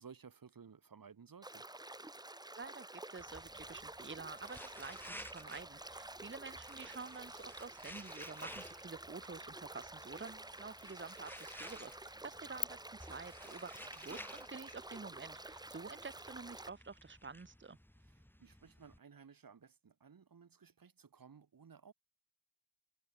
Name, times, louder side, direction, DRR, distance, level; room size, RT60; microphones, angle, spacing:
voice 1, 0.0-1.6 18.1-21.9, right 6 dB, 70° right, 2.0 m, -57 dB
sound 1, 1.4-16.7, right 2 dB, 10° right, 0.8 m, -50 dB
sound 2, 2.6-12.6, left 4 dB, 25° left, 0.8 m, -55 dB
voice 2, 2.6-17.8, right 4 dB, 30° right, 1.5 m, -49 dB
sound 3, 3.2-19.0, equal, 5° left, 3.9 m, -55 dB
wide cardioid pair, 70°, 36 cm